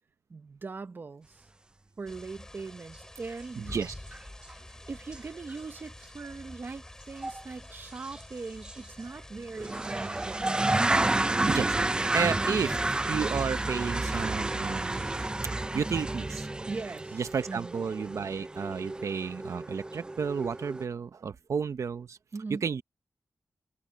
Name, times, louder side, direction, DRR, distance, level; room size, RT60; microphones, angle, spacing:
voice 1, 0.3-1.4 2.0-3.8 4.9-10.9 16.7-17.2 17.5-17.7 22.3-22.7, right 4 dB, 40° right, 0.7 m, -40 dB
sound 1, 2.1-15.3, left 1 dB, 10° left, 2.6 m, -48 dB
sound 2, 3.3-3.4 3.7-4.2 4.5-4.6 5.1-5.2 5.5-5.6 7.2-7.4 8.0-8.2 8.6-8.7 9.6-20.8, right 2 dB, 15° right, 0.3 m, -30 dB
voice 2, 3.6-3.9 11.5-15.0 15.7-16.5 17.1-22.2 22.5-22.8, right 6 dB, 75° right, 0.8 m, -32 dB
wide cardioid pair, 145°, 5 cm